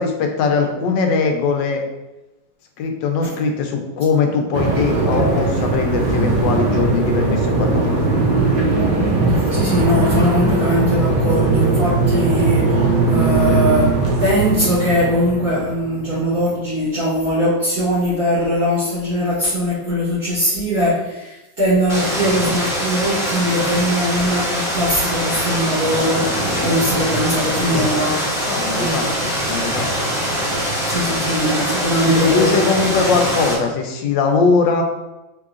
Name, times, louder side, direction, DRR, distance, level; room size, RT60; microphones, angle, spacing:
voice 1, 0.0-1.8 2.8-7.9 28.5-29.9 32.1-34.8, left 4 dB, 75° left, 4 dB, 1.2 m, -20 dB
sound 1, 4.5-16.4, right 3 dB, 70° right, 1.3 m, -19 dB
voice 2, 9.3-13.9 14.2-28.2 28.7-29.2 30.9-32.6, equal, 55° right, -13 dB, 1.7 m, -20 dB
sound 2, 21.9-33.6, equal, 15° left, 1.4 m, -22 dB
3.7 x 3.2 x 2.4 m, 1.0 s
omnidirectional pair, 2.1 m